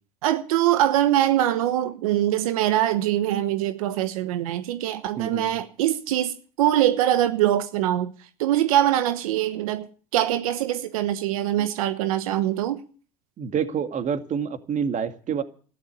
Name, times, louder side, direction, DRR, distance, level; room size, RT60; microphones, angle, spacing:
voice 1, 0.2-8.1 8.4-9.9 10.1-12.8, right 12 dB, 90° right, 1.1 m, -23 dB
voice 2, 5.2-5.6 13.4-15.4, right 7 dB, 45° right, 2.2 m, -27 dB
14.0 x 11.5 x 8.3 m
supercardioid pair, 90°, 18 cm